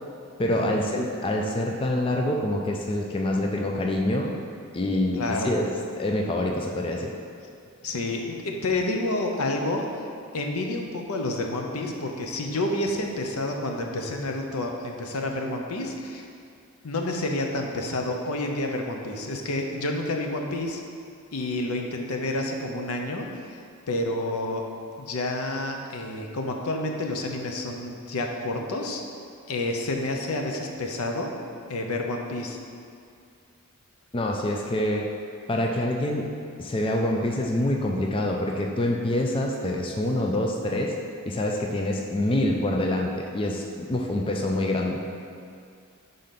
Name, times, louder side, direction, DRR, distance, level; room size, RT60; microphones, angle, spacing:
voice 1, 0.4-4.3 4.7-5.7 6.0-7.1 34.1-35.1 35.5-36.2 36.6-40.9 41.3-45.0, left 1 dB, 25° left, 0 dB, 0.4 m, -26 dB
voice 2, 5.2-5.5 7.8-9.9 10.3-16.3 16.8-20.8 21.3-23.6 23.9-24.6 25.0-29.0 29.5-31.3 31.7-32.6, left 2 dB, 85° left, 2 dB, 0.7 m, -29 dB
5.2 x 3.8 x 5.8 m, 2.3 s
head